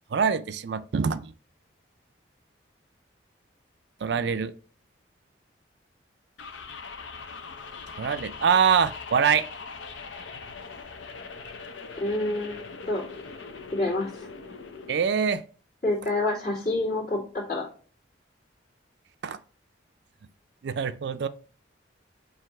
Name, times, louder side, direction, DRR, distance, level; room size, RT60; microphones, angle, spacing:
voice 1, 0.1-1.3 4.0-4.5 8.0-9.5 14.9-15.4 19.2-19.4 20.6-21.3, right 6 dB, 60° right, 0.4 m, -24 dB
sound 1, 6.4-15.0, left 4 dB, 80° left, 0.7 m, -41 dB
voice 2, 12.0-13.0 13.7-14.3 15.8-17.7, left 2 dB, 50° left, 2.7 m, -28 dB
7.5 x 2.7 x 4.7 m
head